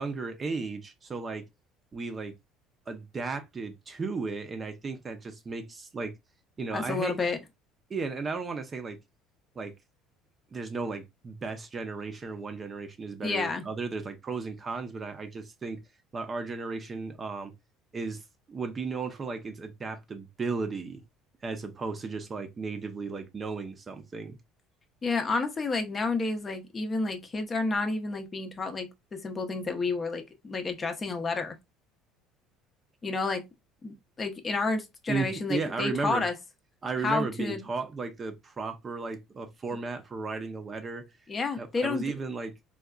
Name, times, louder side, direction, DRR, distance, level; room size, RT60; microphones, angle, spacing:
voice 1, 0.0-1.4 1.9-2.3 2.9-6.1 6.6-7.2 7.9-9.0 9.6-9.7 10.5-15.8 16.1-17.5 17.9-18.2 18.5-21.0 21.4-24.4 35.1-36.2 36.8-41.1 41.6-42.5, right 4 dB, 25° right, 0.6 m, -35 dB
voice 2, 6.7-7.4 13.2-13.6 25.0-31.5 33.0-33.4 33.8-36.3 37.0-37.6 41.3-42.0, left 3 dB, 25° left, 0.6 m, -30 dB
3.7 x 2.3 x 2.2 m
cardioid pair, 115°, 0 cm